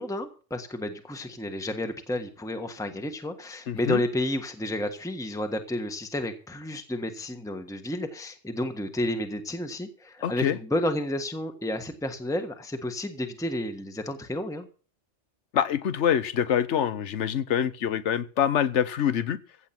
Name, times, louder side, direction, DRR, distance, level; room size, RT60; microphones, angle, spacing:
voice 1, 0.0-14.7, left 1 dB, 5° left, 1.4 m, -31 dB
voice 2, 3.7-4.0 10.2-10.6 15.5-19.4, left 9 dB, 80° left, 1.2 m, -25 dB
16.0 x 8.2 x 5.9 m
omnidirectional pair, 1.2 m